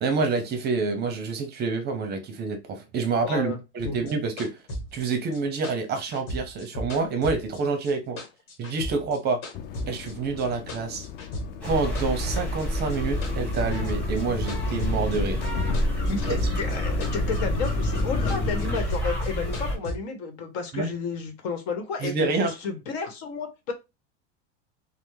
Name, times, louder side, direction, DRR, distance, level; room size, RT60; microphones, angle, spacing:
voice 1, 0.0-4.6 4.9-8.2 8.6-9.4 9.9-11.0 11.6-15.4 16.3-16.4 20.7-20.9 22.0-22.5, right 4 dB, 30° right, 0.6 m, -27 dB
voice 2, 3.2-3.6 3.8-4.0 16.1-23.7, left 4 dB, 65° left, 1.1 m, -32 dB
sound 1, 3.8-7.9 8.2-10.1 10.4-11.7 12.0-15.5 15.7-17.7 18.0-20.0, equal, 50° left, 1.4 m, -36 dB
sound 2, 9.5-18.8, left 8 dB, 30° left, 0.4 m, -34 dB
sound 3, 11.6-19.8, equal, 5° left, 1.3 m, -28 dB
3.3 x 2.0 x 3.1 m
supercardioid pair, 135°, 33 cm